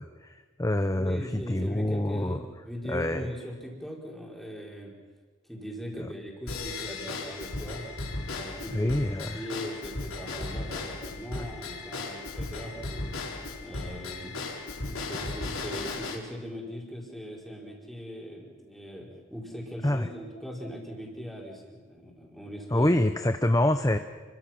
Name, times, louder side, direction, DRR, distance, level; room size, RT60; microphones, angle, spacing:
voice 1, 0.0-2.4 2.9-3.2 8.7-9.4 19.8-20.1 22.7-24.0, left 1 dB, 15° left, 8 dB, 0.7 m, -26 dB
voice 2, 0.9-4.9 5.5-7.9 8.3-9.0 9.3-13.2 13.6-14.3 14.7-22.9, equal, ahead, -3 dB, 4.6 m, -40 dB
Drum kit / Drum / Bell, 6.5-16.2, left 2 dB, 85° left, 4.5 m, -36 dB
30.0 x 23.5 x 6.0 m, 1.4 s
head